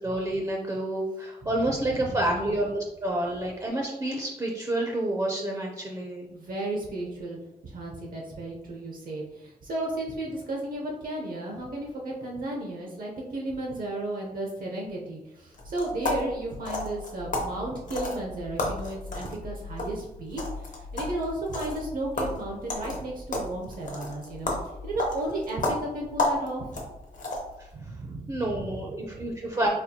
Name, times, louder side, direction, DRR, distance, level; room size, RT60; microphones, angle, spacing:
voice 1, 0.0-6.3 27.6-27.7 28.3-29.7, right 1 dB, 25° right, -1 dB, 0.4 m, -29 dB
voice 2, 1.6-2.2 6.3-7.4 7.6-24.5 24.8-26.8 27.7-28.6, right 1 dB, 70° right, -1 dB, 0.6 m, -34 dB
sound 1, 15.5-27.7, left 2 dB, 60° left, 0.7 m, -33 dB
4.1 x 2.3 x 2.7 m, 0.96 s
wide cardioid pair, 165°, 15 cm